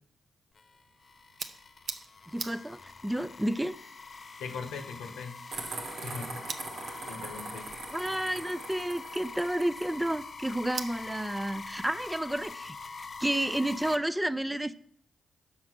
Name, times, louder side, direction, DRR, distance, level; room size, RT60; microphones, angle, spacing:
sound 1, 0.5-14.0, left 4 dB, 50° left, 0.6 m, -44 dB
sound 2, 0.7-13.0, right 5 dB, 60° right, 0.7 m, -47 dB
voice 1, 2.3-3.8 7.9-12.8 13.2-14.7, right 1 dB, 10° right, 12 dB, 0.5 m, -31 dB
voice 2, 4.4-5.4 6.0-6.5 7.1-7.7, left 5 dB, 85° left, 5 dB, 1.2 m, -40 dB
sound 3, 5.5-9.9, right 3 dB, 80° right, 1.4 m, -42 dB
6.4 x 5.8 x 6.0 m, 0.65 s
supercardioid pair, 45°, 0 cm